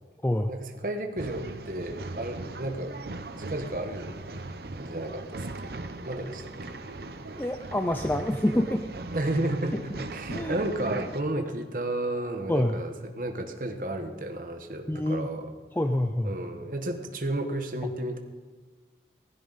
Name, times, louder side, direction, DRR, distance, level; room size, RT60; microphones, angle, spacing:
voice 1, 0.5-3.0 3.4-4.2 4.7-5.5 5.8-6.7 9.1-15.5 16.2-18.2, right 1 dB, 50° right, 5 dB, 1.2 m, -32 dB
Male speech man speaking / Chatter / Rattle, 1.2-11.2, right 2 dB, 65° right, 0.8 m, -39 dB
voice 2, 7.4-8.9 10.3-10.6 12.5-12.8 14.9-15.3 15.7-16.3, left 1 dB, 10° left, 6 dB, 0.4 m, -26 dB
16.5 x 15.0 x 4.1 m, 1.4 s
head